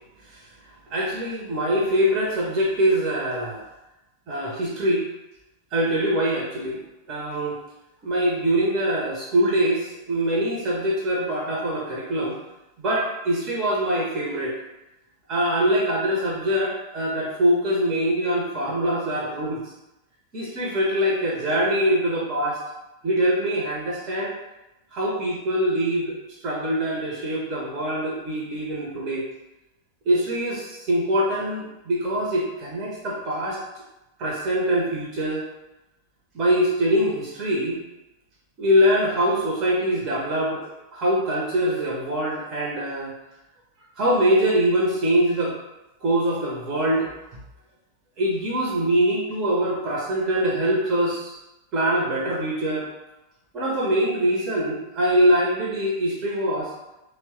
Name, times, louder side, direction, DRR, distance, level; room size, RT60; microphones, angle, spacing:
voice 1, 0.9-3.6 4.3-5.0 5.7-6.8 7.1-7.6 8.0-12.4 12.8-14.5 15.3-19.6 20.3-22.6 23.0-24.3 24.9-26.2 26.4-29.2 30.1-33.6 34.2-35.4 36.3-37.8 38.6-43.1 44.0-45.5 46.0-47.1 48.2-51.4 51.7-52.9 53.5-56.7, equal, 35° right, -4 dB, 0.6 m, -23 dB
3.1 x 2.1 x 3.0 m, 0.97 s
figure-of-eight pair, 90°, 0 cm